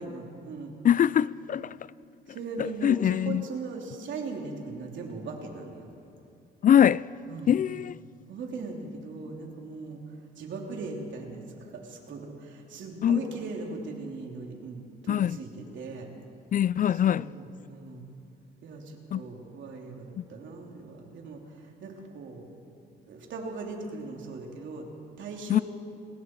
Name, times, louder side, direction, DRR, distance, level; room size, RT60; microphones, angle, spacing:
voice 1, 0.0-0.7 2.3-5.9 7.3-7.5 8.3-16.1 16.9-18.0 18.6-22.4 23.1-24.9 25.2-25.6, right 3 dB, 70° right, 3.3 m, -39 dB
voice 2, 0.8-1.8 2.8-3.4 6.6-7.1 7.5-7.9 13.0-13.2 15.1-15.4 16.5-17.3 19.1-19.2 20.2-20.3 25.5-25.6, left 9 dB, 45° left, 0.4 m, -22 dB
28.5 x 20.0 x 4.7 m
cardioid pair, 90°, 20 cm